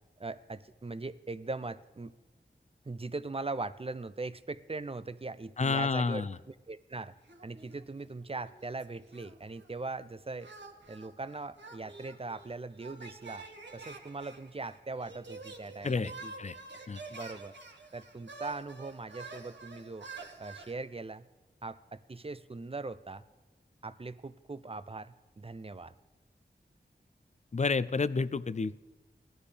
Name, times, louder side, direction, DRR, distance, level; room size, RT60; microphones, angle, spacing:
voice 1, 0.2-2.1 2.9-7.1 7.4-10.5 10.9-13.5 13.7-16.3 17.1-17.5 17.9-20.1 20.4-21.2 21.6-23.2 23.8-25.9, right 3 dB, 30° right, 14 dB, 0.5 m, -40 dB
voice 2, 5.6-6.4 15.8-16.1 16.4-16.6 16.9-17.0 27.5-28.8, left 4 dB, 40° left, 16 dB, 0.4 m, -30 dB
sound 1, 7.3-8.1 8.4-9.7 10.4-20.7, right 3 dB, 80° right, 1.4 m, -48 dB
17.5 x 12.5 x 3.3 m, 1.2 s
wide cardioid pair, 70°, 18 cm